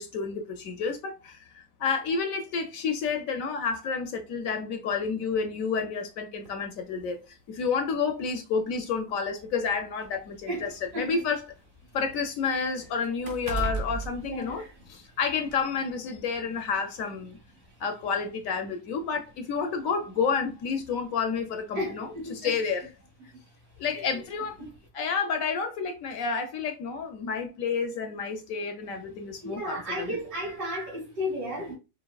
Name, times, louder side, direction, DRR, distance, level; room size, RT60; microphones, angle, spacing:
voice 1, 0.0-10.7 11.0-11.4 11.9-17.4 17.8-22.9 23.8-24.6 24.9-30.2, left 5 dB, 65° left, 0.9 m, -30 dB
sound 1, 6.4-6.6 7.7-7.8 8.2-8.3 9.3-11.3 11.6-15.1 15.5-15.6, right 4 dB, 45° right, 0.8 m, -37 dB
voice 2, 10.5-11.2 14.3-14.7 21.7-22.5 23.9-24.1 24.6-24.7 29.4-31.8, equal, 90° right, 2.6 m, -34 dB
5.2 x 2.7 x 2.3 m
omnidirectional pair, 1.7 m